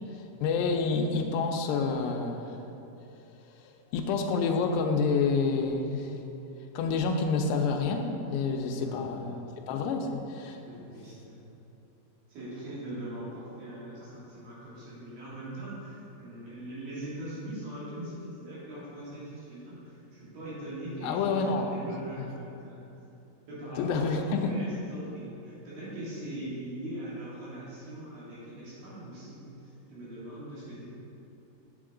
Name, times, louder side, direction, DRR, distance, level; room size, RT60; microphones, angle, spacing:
voice 1, 0.4-2.5 3.9-6.1 6.8-10.6 21.0-21.7 23.8-24.5, left 4 dB, 85° left, 4 dB, 2.8 m, -28 dB
voice 2, 8.8-9.5 10.6-11.4 12.3-22.8 23.5-30.8, right 1 dB, 60° right, -8 dB, 3.9 m, -41 dB
9.3 x 7.7 x 3.7 m, 2.9 s
omnidirectional pair, 4.9 m